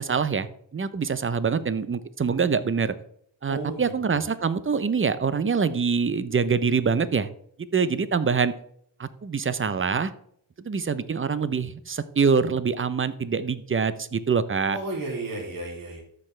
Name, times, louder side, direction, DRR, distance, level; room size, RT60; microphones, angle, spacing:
voice 1, 0.0-2.9 3.4-7.3 7.7-8.5 9.0-10.1 10.6-14.8, right 5 dB, 30° right, 14 dB, 0.6 m, -25 dB
voice 2, 3.5-4.2 14.7-16.0, right 2 dB, 45° right, -2 dB, 3.0 m, -33 dB
13.5 x 4.6 x 3.2 m, 0.68 s
cardioid pair, 75°, 45 cm